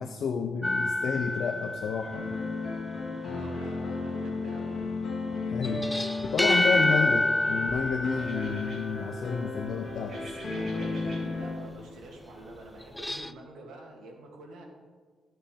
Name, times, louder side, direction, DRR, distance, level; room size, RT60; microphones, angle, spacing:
voice 1, 0.0-2.4 5.5-5.9 6.2-10.1, left 6 dB, 55° left, 5 dB, 0.7 m, -31 dB
sound 1, 0.6-2.6 5.6-9.3 12.8-13.3, left 1 dB, 5° left, 0.3 m, -28 dB
sound 2, 2.1-11.5, left 3 dB, 35° left, 2.6 m, -34 dB
voice 2, 3.3-4.8 10.0-14.7, right 2 dB, 75° right, 0 dB, 2.6 m, -47 dB
sound 3, 8.2-13.2, right 1 dB, 30° right, 3.5 m, -51 dB
14.0 x 7.4 x 5.2 m, 1.5 s
cardioid pair, 170°, 0 cm